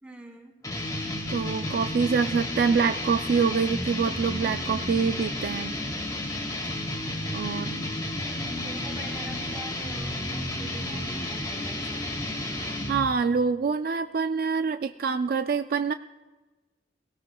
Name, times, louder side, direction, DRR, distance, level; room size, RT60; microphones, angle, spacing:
voice 1, 0.0-0.5 7.5-12.3, right 1 dB, 10° right, 1 dB, 2.3 m, -45 dB
sound 1, 0.6-13.2, left 1 dB, 20° left, 2.1 m, -32 dB
voice 2, 1.3-5.7 7.3-7.8 12.5-15.9, right 5 dB, 55° right, 9 dB, 0.4 m, -26 dB
20.5 x 17.0 x 2.3 m, 1.2 s
head